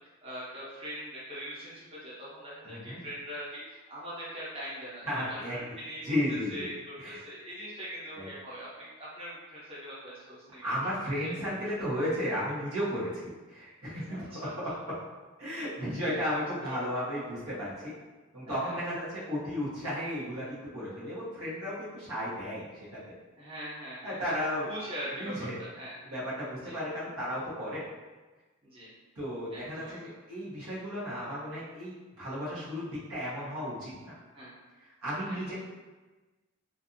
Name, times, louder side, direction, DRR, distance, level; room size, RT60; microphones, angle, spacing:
voice 1, 0.0-10.6 11.2-11.3 14.1-14.5 15.6-16.8 18.4-18.8 23.4-24.3 24.7-25.9 26.6-26.8 28.6-28.9 29.5-30.1 32.2-32.4 34.3-34.5 35.3-35.5, equal, 25° right, -9 dB, 0.7 m, -42 dB
voice 2, 2.6-3.0 5.1-5.6 6.0-6.7 7.0-7.2 8.2-8.3 10.6-14.7 15.4-17.9 18.3-23.0 24.0-24.7 25.2-25.6 26.1-27.8 29.2-34.1 35.0-35.5, equal, 85° right, -9 dB, 1.1 m, -34 dB
2.6 x 2.5 x 2.5 m, 1.2 s
head